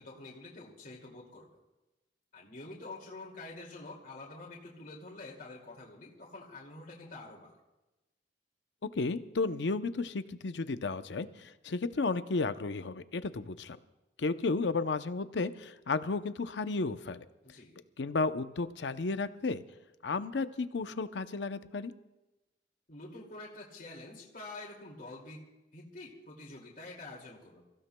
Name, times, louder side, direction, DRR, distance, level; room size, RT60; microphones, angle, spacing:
voice 1, 0.0-1.5 2.3-7.5 17.4-17.8 22.9-25.4 25.7-27.6, left 2 dB, 55° left, -4 dB, 2.4 m, -47 dB
voice 2, 9.0-13.8 14.2-17.3 18.0-19.6 20.0-21.9, left 3 dB, 80° left, 11 dB, 0.6 m, -33 dB
28.5 x 15.5 x 2.2 m, 1.1 s
head